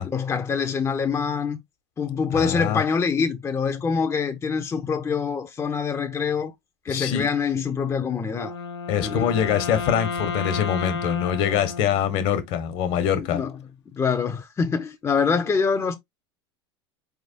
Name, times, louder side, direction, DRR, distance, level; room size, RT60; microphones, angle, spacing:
voice 1, 0.0-1.6 2.0-6.5 6.8-8.6 9.0-9.3 13.2-13.5 13.9-16.0, left 5 dB, 20° left, 0.8 m, -25 dB
voice 2, 2.3-2.8 6.9-7.3 8.9-13.4, left 9 dB, 55° left, 1.4 m, -24 dB
Wind instrument woodwind instrument, 8.3-12.5, left 5 dB, 80° left, 0.8 m, -32 dB
4.9 x 3.5 x 2.8 m
hypercardioid pair, 80°, 14 cm